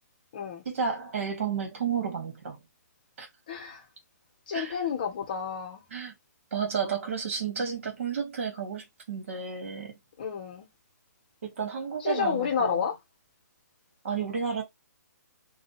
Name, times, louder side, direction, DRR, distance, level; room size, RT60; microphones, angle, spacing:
voice 1, 0.6-2.6 3.2-3.3 4.5-4.8 5.9-6.1 6.5-9.9 11.4-12.9 14.0-14.6, right 6 dB, 45° right, 1.7 m, -32 dB
voice 2, 3.5-3.8 4.5-5.8 10.2-10.7 12.0-13.0, left 7 dB, 30° left, 0.9 m, -30 dB
3.3 x 2.3 x 4.0 m
hypercardioid pair, 175°, 10 cm